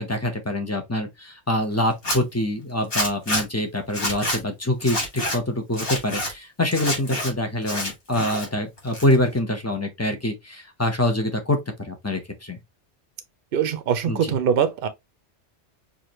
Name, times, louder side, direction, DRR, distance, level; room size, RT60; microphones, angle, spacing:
voice 1, 0.0-12.6 14.1-14.2, left 1 dB, 15° left, 0.8 m, -25 dB
Zipper (clothing), 1.9-2.2 2.9-3.4 3.9-4.4 4.8-5.4 5.7-6.3 6.7-7.3 7.6-8.5 8.8-9.4, left 1 dB, 55° left, 2.0 m, -27 dB
voice 2, 13.5-14.9, right 8 dB, 60° right, 0.8 m, -22 dB
4.8 x 2.7 x 3.0 m
omnidirectional pair, 1.2 m